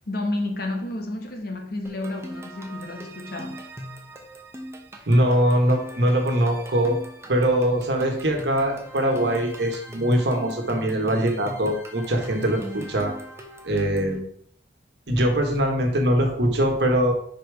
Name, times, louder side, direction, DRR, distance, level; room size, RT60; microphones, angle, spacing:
voice 1, 0.1-3.6, left 2 dB, 55° left, 3 dB, 1.2 m, -31 dB
sound 1, 1.9-14.2, equal, 15° right, 0.9 m, -41 dB
voice 2, 5.1-7.0 7.3-13.1 13.6-14.3 15.1-17.1, right 1 dB, 70° right, 2 dB, 1.4 m, -22 dB
4.9 x 4.7 x 4.7 m, 0.64 s
head